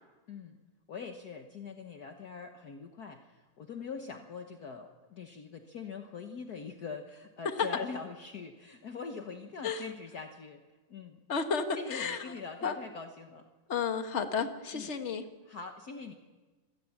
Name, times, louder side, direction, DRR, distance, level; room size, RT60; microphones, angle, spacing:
voice 1, 0.9-10.6 10.9-11.2 11.8-13.5 14.7-14.9 15.5-16.1, left 5 dB, 60° left, 5 dB, 1.0 m, -43 dB
voice 2, 11.3-12.3 12.6-12.8 13.7-15.3, left 5 dB, 35° left, 6 dB, 1.2 m, -32 dB
26.5 x 19.0 x 7.2 m, 1.3 s
omnidirectional pair, 3.4 m